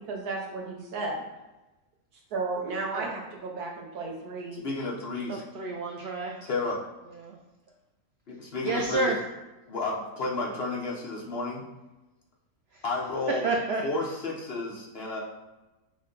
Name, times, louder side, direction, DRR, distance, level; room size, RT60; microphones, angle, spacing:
voice 1, 0.1-1.2 2.3-4.6, right 3 dB, 90° right, 0 dB, 1.4 m, -33 dB
voice 2, 4.6-5.4 6.4-6.8 8.3-9.2 9.7-11.6 12.8-13.5 13.8-15.2, left 2 dB, 50° left, -3 dB, 0.8 m, -31 dB
voice 3, 5.3-6.4 7.2-7.4 8.6-9.2 13.4-13.8, right 3 dB, 75° right, 1 dB, 0.6 m, -29 dB
5.9 x 2.2 x 3.8 m, 1.0 s
omnidirectional pair, 1.6 m